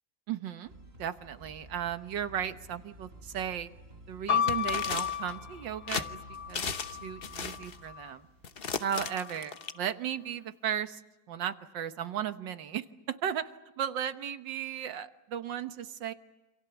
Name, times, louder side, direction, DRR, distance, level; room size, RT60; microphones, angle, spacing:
voice 1, 0.3-0.7 1.0-3.7 4.1-6.2 6.5-8.3 8.8-11.0 11.3-13.5 13.8-16.1, right 9 dB, 80° right, 10 dB, 1.8 m, -35 dB
sound 1, 0.6-9.1, right 1 dB, 30° right, 5.0 m, -52 dB
sound 2, 4.3-8.1 8.9-9.7, left 8 dB, 60° left, 1.7 m, -34 dB
sound 3, 4.5-5.3 5.9-6.1 6.5-7.0 7.2-7.8 8.4-9.7, left 6 dB, 40° left, 0.9 m, -35 dB
28.0 x 27.0 x 7.1 m, 1.1 s
omnidirectional pair, 2.0 m